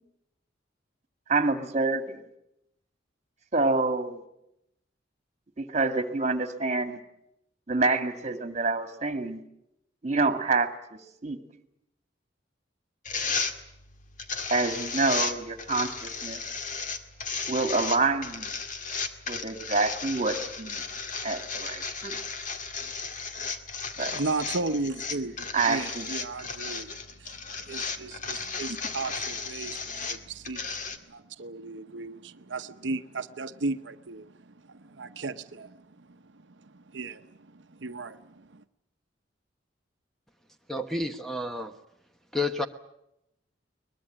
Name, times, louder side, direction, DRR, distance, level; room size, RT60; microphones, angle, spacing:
voice 1, 1.3-2.2 3.5-4.2 5.6-7.0 7.7-9.4 10.0-10.7 11.2-11.4 14.5-16.4 17.5-18.5 19.3-20.8 21.2-22.2 24.0-24.2 25.5-26.0, right 3 dB, 40° right, 8 dB, 2.2 m, -27 dB
sound 1, 13.1-31.0, left 5 dB, 45° left, 1.9 m, -35 dB
voice 2, 24.0-38.6, right 3 dB, 75° right, 9 dB, 0.9 m, -36 dB
voice 3, 40.7-41.7 42.3-42.7, left 2 dB, ahead, 6 dB, 1.1 m, -30 dB
22.0 x 21.5 x 8.7 m, 0.82 s
head